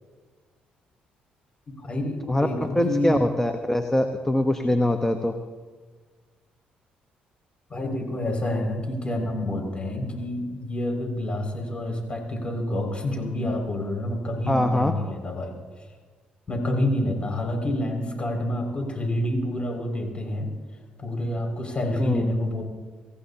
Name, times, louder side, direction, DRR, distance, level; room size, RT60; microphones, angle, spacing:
voice 1, 1.8-3.2 7.7-15.5 16.5-20.5 21.0-22.6, left 1 dB, 30° left, 2 dB, 6.1 m, -28 dB
voice 2, 2.7-5.3 14.5-14.9 22.0-22.3, left 1 dB, 10° left, 6 dB, 1.2 m, -23 dB
25.5 x 15.5 x 2.9 m, 1.4 s
hypercardioid pair, 55°, 4 cm